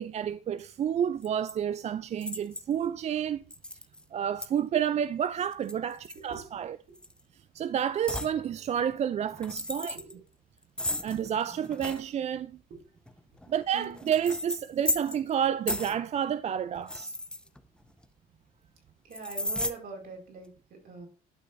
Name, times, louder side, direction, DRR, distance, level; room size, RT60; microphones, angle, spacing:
voice 1, 0.0-3.4 4.1-6.8 7.5-10.0 11.0-12.6 13.5-17.2, right 9 dB, 40° right, 0.4 m, -30 dB
sound 1, 1.2-1.5 2.2-2.8 3.5-4.0 4.4-4.5 5.5-6.6 7.0-7.2 8.1-8.4 9.3-10.1 10.8-12.0 13.1-15.3 15.7-16.0 16.8-18.0 19.1-19.7, left 1 dB, 5° left, 0.7 m, -35 dB
voice 2, 9.9-10.2 12.7-12.8 13.7-14.0 19.0-21.1, right 4 dB, 60° right, 4.7 m, -43 dB
11.5 x 5.9 x 2.6 m
cardioid pair, 110°, 17 cm